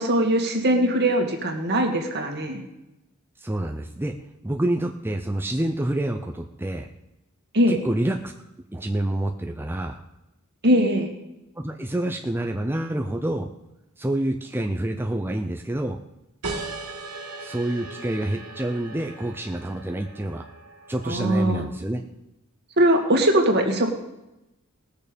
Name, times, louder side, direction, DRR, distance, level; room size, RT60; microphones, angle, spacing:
voice 1, 0.0-2.6 7.5-7.8 10.6-11.1 21.0-21.7 22.8-23.9, right 1 dB, 50° right, 3 dB, 2.0 m, -21 dB
voice 2, 3.4-4.1 4.4-6.9 7.7-8.3 8.7-10.0 11.6-13.5 14.0-16.0 17.4-20.5 20.9-22.0, right 1 dB, 10° right, 2 dB, 0.6 m, -27 dB
sound 1, 16.4-21.6, right 3 dB, 80° right, 2.0 m, -38 dB
19.0 x 6.7 x 5.2 m, 0.93 s
head